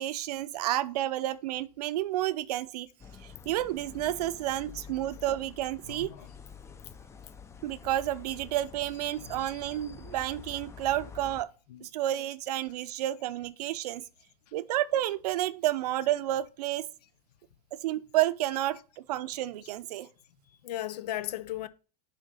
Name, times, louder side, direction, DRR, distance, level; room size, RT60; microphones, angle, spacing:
voice 1, 0.0-2.9 3.2-6.1 7.6-11.5 11.8-14.0 14.5-16.9 17.8-18.8 19.1-20.1, right 14 dB, 85° right, 0.6 m, -30 dB
sound 1, 3.0-11.4, left 6 dB, 15° left, 0.4 m, -48 dB
voice 2, 5.8-6.3 9.2-9.5 11.7-11.9 20.6-21.7, left 13 dB, 90° left, 0.6 m, -37 dB
6.3 x 3.8 x 5.3 m
supercardioid pair, 135°, 20 cm